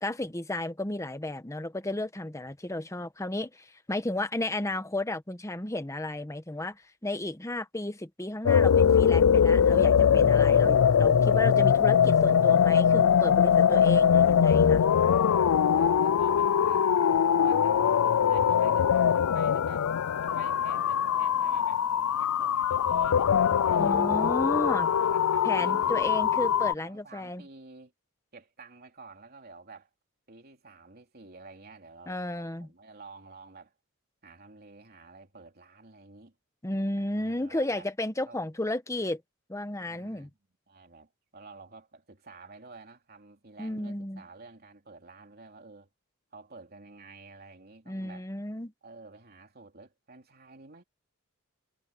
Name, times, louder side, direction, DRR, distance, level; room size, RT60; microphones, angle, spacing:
voice 1, 0.0-14.9 23.8-24.9 25.4-27.4 32.1-32.7 36.6-39.2 39.5-40.3 43.6-44.2 47.9-48.7, left 1 dB, 15° left, 1.2 m, -33 dB
sound 1, 8.5-26.7, left 8 dB, 80° left, 0.4 m, -22 dB
voice 2, 15.7-19.9 20.2-21.8 22.2-24.0 24.7-26.4 26.8-27.9 28.3-29.9 30.3-33.7 34.2-36.3 37.0-37.9 38.3-38.5 39.9-40.3 40.7-45.9 46.3-48.3 48.8-50.8, right 3 dB, 45° right, 3.2 m, -51 dB
head